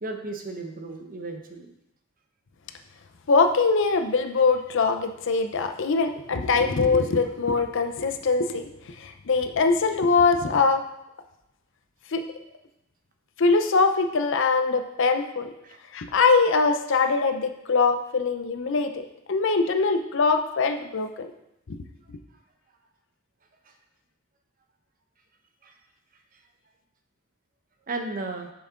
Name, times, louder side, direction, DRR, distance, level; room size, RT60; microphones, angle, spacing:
voice 1, 0.0-1.7 7.1-7.3 15.6-15.8 23.6-23.7 25.6-25.7 26.3-26.4 27.9-28.5, right 2 dB, 45° right, 5 dB, 0.9 m, -35 dB
voice 2, 3.3-8.7 9.0-10.8 12.1-12.2 13.4-15.5 15.9-21.3 21.7-21.8, left 4 dB, 65° left, 6 dB, 0.6 m, -22 dB
7.2 x 6.0 x 3.8 m, 0.84 s
head